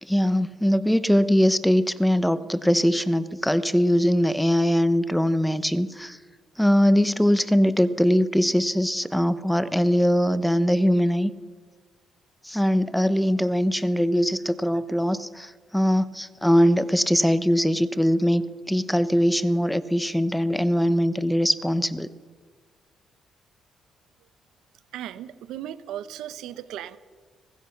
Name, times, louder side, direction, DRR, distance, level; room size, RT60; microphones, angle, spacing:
voice 1, 0.0-6.2 6.6-11.3 12.4-22.1, equal, ahead, 14 dB, 1.0 m, -21 dB
voice 2, 24.9-27.0, right 11 dB, 90° right, 14 dB, 0.9 m, -36 dB
23.5 x 20.0 x 5.9 m, 1.5 s
cardioid pair, 90°, 0 cm